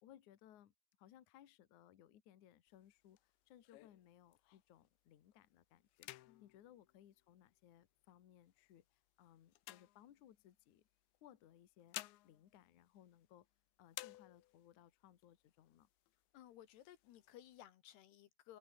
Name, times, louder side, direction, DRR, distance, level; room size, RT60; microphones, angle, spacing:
voice 1, 0.0-6.1 6.4-10.9 11.2-12.0 12.2-13.5 13.8-15.9, left 11 dB, 55° left, 2.4 m, -64 dB
sound 1, 2.7-4.9 5.3-5.6 5.9-7.8 8.5-10.6 11.5-13.5 13.9-14.8 15.2-15.3 15.6-16.2 16.7-17.6, left 18 dB, 85° left, 3.2 m, -55 dB
voice 2, 16.3-18.6, left 12 dB, 70° left, 3.2 m, -59 dB
open air
omnidirectional pair, 5.2 m